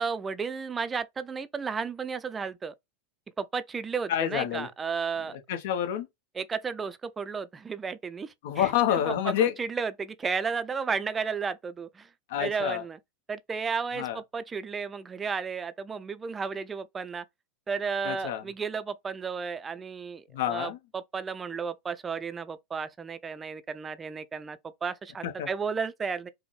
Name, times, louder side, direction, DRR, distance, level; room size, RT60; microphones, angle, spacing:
voice 1, 0.0-2.7 3.4-5.4 6.4-8.7 9.2-9.3 9.6-12.1 12.4-13.0 13.3-17.2 17.7-26.3, right 5 dB, 20° right, 0.4 m, -33 dB
voice 2, 4.1-4.7 5.3-6.1 8.4-9.6 12.3-12.8 14.0-14.2 18.0-18.4 20.3-20.8 25.2-25.5, left 10 dB, 65° left, 0.8 m, -28 dB
5.0 x 2.1 x 3.1 m
hypercardioid pair, 95°, 0 cm